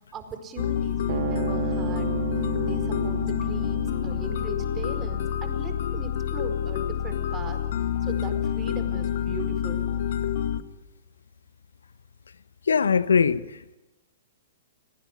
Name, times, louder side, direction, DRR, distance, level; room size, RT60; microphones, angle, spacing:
voice 1, 0.1-2.1 2.6-7.6 8.0-9.9, right 4 dB, 25° right, 4.7 m, -39 dB
sound 1, 0.6-10.6, left 9 dB, 60° left, 1.7 m, -28 dB
sound 2, 1.1-7.7, right 13 dB, 55° right, 1.9 m, -35 dB
voice 2, 12.7-13.8, left 6 dB, 80° left, 1.0 m, -22 dB
30.0 x 19.0 x 9.7 m
hypercardioid pair, 120°, 0 cm